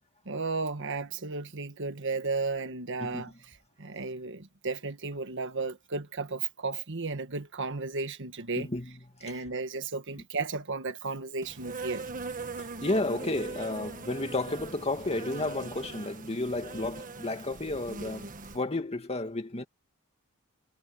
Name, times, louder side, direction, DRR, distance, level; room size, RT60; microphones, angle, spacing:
voice 1, 0.2-8.7 9.2-12.1, right 4 dB, 60° right, 1.5 m, -34 dB
voice 2, 3.0-3.3 8.6-8.9 9.2-9.3 12.6-19.6, left 2 dB, 30° left, 2.3 m, -32 dB
Insect, 11.4-18.6, right 4 dB, 40° right, 1.5 m, -41 dB
head